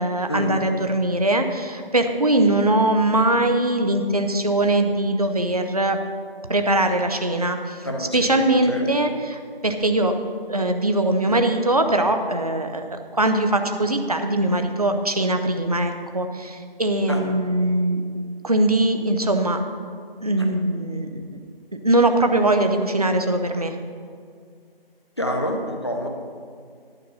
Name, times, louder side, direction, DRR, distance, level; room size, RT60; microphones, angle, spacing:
voice 1, 0.0-6.0 6.5-7.6 8.1-10.1 10.5-18.0 18.4-19.6 20.2-21.4 21.8-23.7, right 1 dB, 40° right, 6 dB, 0.8 m, -21 dB
voice 2, 7.8-8.8 17.1-17.2 25.2-26.1, equal, 25° left, 2 dB, 0.9 m, -27 dB
12.0 x 7.6 x 5.5 m, 2.1 s
figure-of-eight pair, 175°, 30 cm